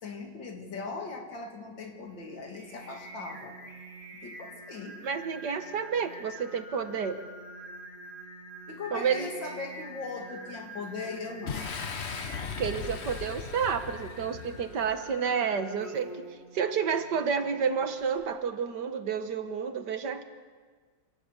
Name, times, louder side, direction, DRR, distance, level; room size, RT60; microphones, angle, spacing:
voice 1, 0.0-3.6 4.1-5.0 8.7-11.7, left 4 dB, 80° left, 3 dB, 3.0 m, -39 dB
Singing, 2.0-18.3, right 2 dB, 35° right, 2.4 m, -46 dB
voice 2, 5.0-7.2 8.9-9.3 12.3-20.2, right 6 dB, 65° right, 9 dB, 1.8 m, -30 dB
Boom, 11.5-15.1, left 6 dB, 45° left, 1.1 m, -38 dB
26.5 x 18.0 x 6.8 m, 1.5 s
omnidirectional pair, 2.0 m